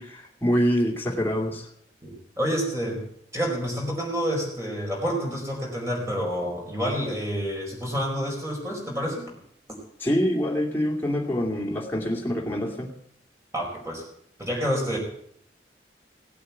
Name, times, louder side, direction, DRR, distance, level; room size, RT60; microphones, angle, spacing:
voice 1, 0.0-1.6 10.0-12.9, equal, 10° left, -2 dB, 2.5 m, -25 dB
voice 2, 2.0-3.0 3.3-9.3 13.5-14.0 14.4-15.0, equal, 15° right, -1 dB, 4.7 m, -28 dB
17.0 x 8.6 x 8.3 m, 0.67 s
head